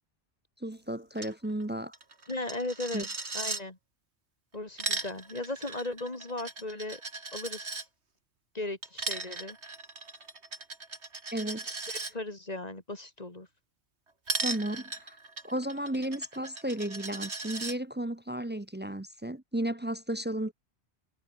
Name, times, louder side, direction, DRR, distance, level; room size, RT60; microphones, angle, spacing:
voice 1, 0.6-1.9 2.9-3.0 11.3-11.8 14.4-15.2 15.4-20.5, right 1 dB, 15° right, 0.5 m, -34 dB
Coin (dropping), 1.2-1.3 1.6-1.7 1.9-3.6 4.5-7.9 8.8-12.1 14.3-17.8, right 3 dB, 85° right, 3.4 m, -37 dB
voice 2, 2.3-3.1 3.3-3.8 4.5-7.0 7.3-7.8 8.5-9.6 11.9-13.5, left 2 dB, 35° left, 3.0 m, -37 dB
omnidirectional pair, 1.1 m